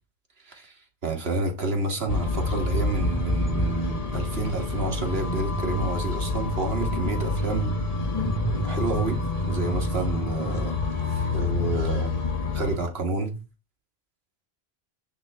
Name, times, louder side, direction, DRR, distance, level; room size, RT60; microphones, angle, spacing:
voice 1, 1.0-7.7 8.6-9.2 9.5-10.7 11.1-12.1 12.5-13.4, right 3 dB, 70° right, 1.8 m, -29 dB
sound 1, 2.1-12.8, left 2 dB, 35° left, 1.1 m, -27 dB
9.5 x 3.4 x 3.3 m
omnidirectional pair, 1.1 m